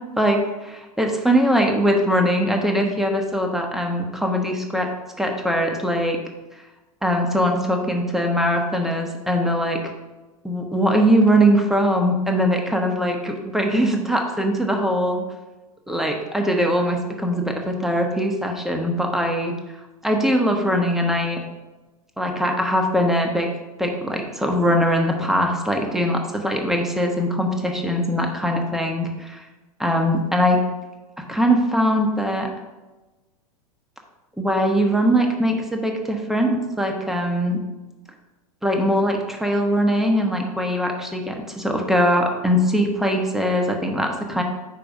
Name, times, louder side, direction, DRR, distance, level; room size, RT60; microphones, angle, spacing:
voice 1, 0.2-4.9 5.2-6.2 7.0-9.8 10.4-15.2 15.9-19.5 20.0-21.4 22.2-23.5 23.8-29.4 29.8-30.6 31.3-32.5 34.4-37.6 38.6-44.4, equal, ahead, 2 dB, 0.9 m, -21 dB
5.1 x 4.3 x 5.2 m, 1.1 s
hypercardioid pair, 105°, 19 cm